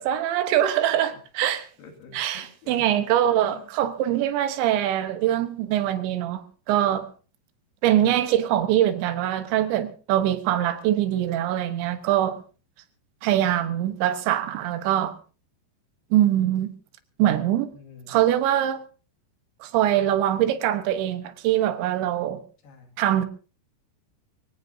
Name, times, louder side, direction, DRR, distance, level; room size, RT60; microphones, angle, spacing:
voice 1, 0.0-1.7 2.1-7.1 7.8-12.4 13.2-15.1 16.1-16.7 17.2-17.7 18.1-18.8 19.6-22.4 23.0-23.3, right 12 dB, 85° right, 3.5 m, -23 dB
voice 2, 1.8-3.7 17.7-18.2 22.6-22.9, left 6 dB, 65° left, 4.2 m, -47 dB
23.5 x 17.0 x 2.7 m
omnidirectional pair, 5.1 m